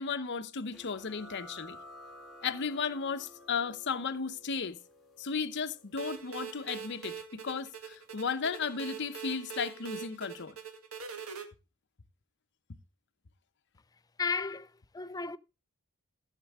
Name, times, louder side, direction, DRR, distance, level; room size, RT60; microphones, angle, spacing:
voice 1, 0.0-1.8 2.4-4.8 5.2-10.6, left 5 dB, 55° left, 0.8 m, -35 dB
sound 1, 0.7-8.0, left 1 dB, ahead, 2.3 m, -54 dB
sound 2, 6.0-11.4, right 7 dB, 80° right, 1.8 m, -43 dB
voice 2, 14.2-15.4, left 4 dB, 15° left, 0.4 m, -34 dB
14.5 x 7.4 x 3.5 m
head